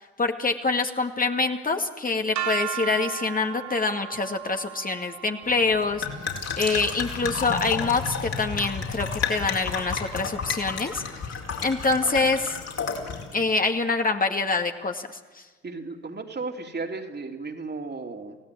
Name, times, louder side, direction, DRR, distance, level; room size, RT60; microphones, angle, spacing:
voice 1, 0.2-6.1 6.6-11.0 11.6-12.6 13.3-15.4, left 3 dB, 30° left, 4 dB, 2.1 m, -25 dB
sound 1, 2.4-8.3, right 12 dB, 70° right, 1.5 m, -37 dB
sound 2, 5.4-13.3, left 5 dB, 55° left, 4.8 m, -31 dB
voice 2, 15.6-18.4, right 3 dB, 35° right, 3 dB, 3.2 m, -34 dB
29.5 x 16.5 x 8.7 m, 1.3 s
hypercardioid pair, 50°, 30 cm